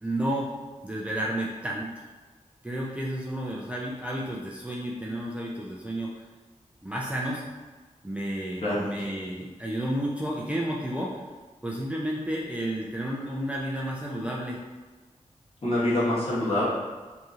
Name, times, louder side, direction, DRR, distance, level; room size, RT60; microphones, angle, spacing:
voice 1, 0.0-0.6 0.8-1.9 2.6-6.1 6.8-7.4 8.0-11.2 11.6-14.6, right 1 dB, 10° right, -4 dB, 0.4 m, -31 dB
voice 2, 15.6-16.6, left 1 dB, 50° left, -9 dB, 1.2 m, -25 dB
2.8 x 2.7 x 2.4 m, 1.3 s
wide cardioid pair, 80°, 13 cm